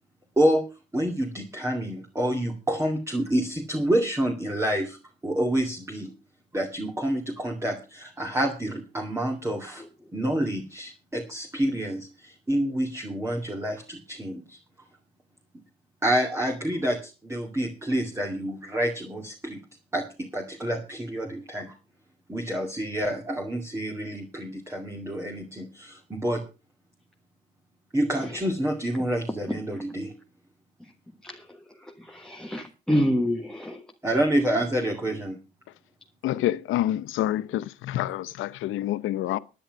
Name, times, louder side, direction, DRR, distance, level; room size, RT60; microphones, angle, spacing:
voice 1, 0.4-0.7 0.9-5.0 5.2-6.1 6.5-9.8 10.1-14.6 16.0-19.6 19.9-21.7 22.3-26.4 27.9-30.2 34.0-35.4, right 1 dB, 15° right, 2.4 m, -28 dB
voice 2, 29.0-29.8 30.8-30.9 31.2-33.9, equal, 5° left, 1.4 m, -29 dB
voice 3, 36.2-39.4, left 13 dB, 85° left, 0.8 m, -27 dB
10.5 x 10.0 x 6.2 m
cardioid pair, 90°, 20 cm